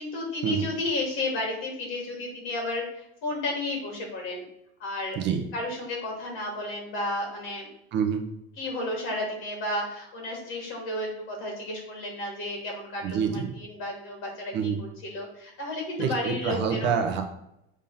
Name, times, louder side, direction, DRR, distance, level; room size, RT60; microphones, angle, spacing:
voice 1, 0.0-4.4 4.8-5.2 5.5-7.7 8.6-14.5 14.8-17.0, left 2 dB, 45° left, 0 dB, 2.8 m, -32 dB
voice 2, 7.9-8.2 13.0-13.5 14.5-14.8 16.0-17.2, right 6 dB, 40° right, 5 dB, 0.9 m, -26 dB
7.1 x 3.6 x 5.7 m, 0.80 s
supercardioid pair, 150°, 29 cm